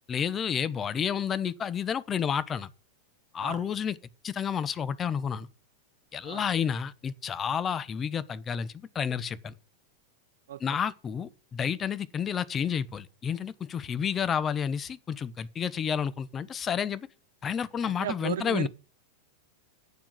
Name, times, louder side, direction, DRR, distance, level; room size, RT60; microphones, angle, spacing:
voice 1, 0.1-2.7 3.3-4.0 4.2-5.5 6.1-9.5 10.6-17.1 17.4-18.7, left 7 dB, 25° left, 1.0 m, -30 dB
voice 2, 17.8-18.7, right 11 dB, 60° right, 0.6 m, -35 dB
9.3 x 7.3 x 8.9 m
figure-of-eight pair, 95°, 0 cm